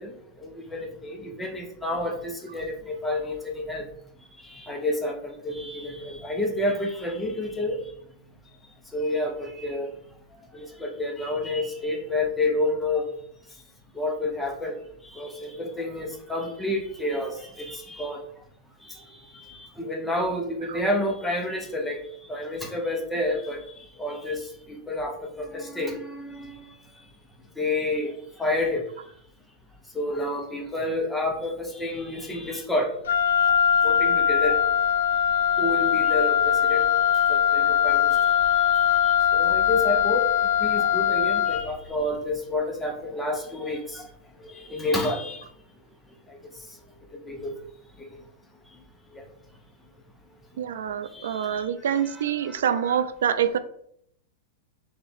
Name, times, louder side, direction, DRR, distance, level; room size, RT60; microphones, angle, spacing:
voice 1, 0.0-3.9 4.4-7.8 8.9-9.9 10.5-13.1 13.9-14.8 15.1-18.2 18.8-19.0 19.3-22.0 22.3-26.6 27.6-28.9 29.9-32.9 33.4-34.6 35.4-36.9 37.3-44.1 44.4-45.5 46.3-46.4 47.3-47.5 48.0-48.1 49.1-49.3 51.1-51.6 52.0-52.6 52.9-53.0, left 2 dB, 5° left, 2 dB, 0.4 m, -30 dB
Wind instrument woodwind instrument, 33.1-41.8, left 9 dB, 80° left, 0.3 m, -21 dB
voice 2, 50.6-53.6, right 8 dB, 80° right, 11 dB, 0.3 m, -26 dB
3.3 x 2.9 x 4.1 m, 0.69 s
supercardioid pair, 175°, 0 cm